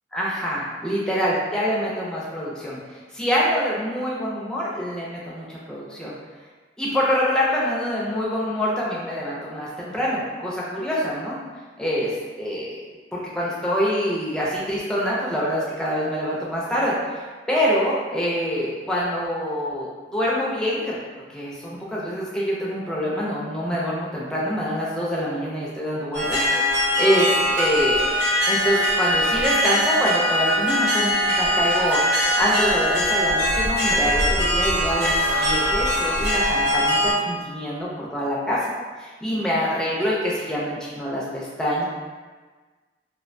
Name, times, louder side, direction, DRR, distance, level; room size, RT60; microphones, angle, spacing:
voice 1, 0.1-2.8 3.1-6.1 6.8-11.4 11.8-12.1 12.4-12.8 13.1-17.2 17.5-21.0 21.3-27.3 27.6-28.0 28.5-38.6 39.0-41.9, equal, 5° left, -7 dB, 0.4 m, -25 dB
sound 1, 26.1-37.1, equal, 60° right, 0.8 m, -21 dB
2.4 x 2.1 x 2.5 m, 1.4 s
head